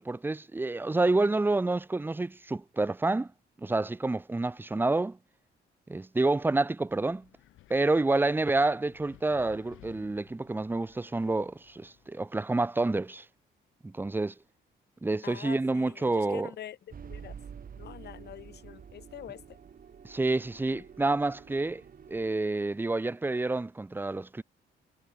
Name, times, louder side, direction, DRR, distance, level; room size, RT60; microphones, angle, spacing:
voice 1, 0.0-3.3 3.6-5.2 5.9-7.3 7.7-13.3 13.8-14.3 15.0-16.5 20.0-21.8 22.1-24.4, right 2 dB, 10° right, 0.5 m, -28 dB
Wind, 6.9-12.1, left 15 dB, 90° left, 3.3 m, -58 dB
voice 2, 15.2-17.4 17.7-19.6 20.7-20.8, left 11 dB, 55° left, 0.8 m, -45 dB
sound 1, 16.9-22.3, right 7 dB, 45° right, 2.5 m, -48 dB
cardioid pair, 90°, 20 cm